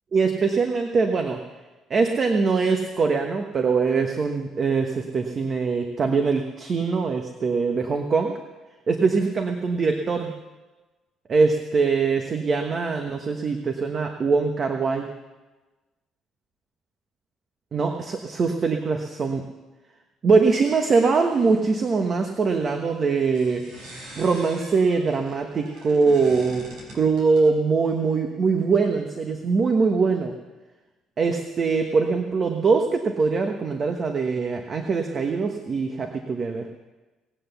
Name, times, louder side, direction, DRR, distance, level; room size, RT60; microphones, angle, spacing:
voice 1, 0.1-1.4 1.9-8.3 8.9-10.3 11.3-15.1 17.7-19.5 20.2-23.6 24.2-26.6 26.9-30.3 31.2-36.7, right 4 dB, 45° right, 4 dB, 1.2 m, -22 dB
sound 1, 20.6-21.7 23.2-27.5, right 1 dB, 85° right, 5.0 m, -43 dB
19.0 x 8.0 x 7.0 m, 1.2 s
cardioid pair, 100°, 0 cm